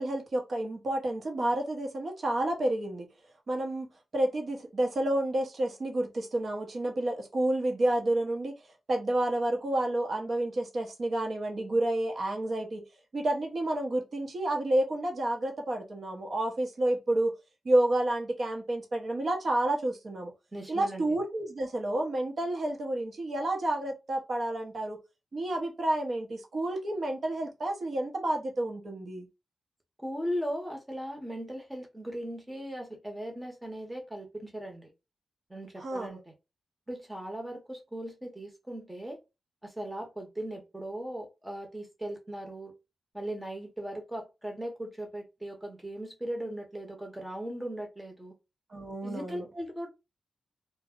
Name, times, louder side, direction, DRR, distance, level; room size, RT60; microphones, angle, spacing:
voice 1, 0.0-3.1 3.5-3.9 4.1-8.5 8.9-12.8 13.1-17.3 17.6-20.3 20.7-25.0 25.3-29.3 35.8-36.2 48.7-49.4, right 1 dB, 50° right, 0.8 m, -30 dB
voice 2, 20.5-21.1 30.0-34.9 35.5-36.3 36.9-39.2 39.6-42.7 43.1-48.3 49.0-49.9, equal, 10° right, 0.9 m, -38 dB
2.2 x 2.0 x 3.5 m
wide cardioid pair, 115°, 0 cm